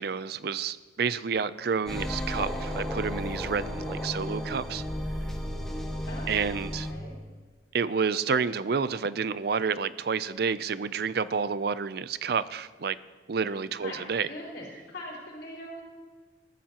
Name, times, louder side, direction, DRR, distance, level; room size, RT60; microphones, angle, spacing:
voice 1, 0.0-4.8 6.3-6.9 7.7-13.0 13.3-14.3, right 5 dB, 55° right, 15 dB, 0.5 m, -29 dB
sound 1, 1.9-6.9, equal, 5° left, 1.7 m, -33 dB
voice 2, 6.0-7.2 13.8-15.8, left 1 dB, 65° left, -4 dB, 4.4 m, -42 dB
20.5 x 14.0 x 3.0 m, 1.4 s
head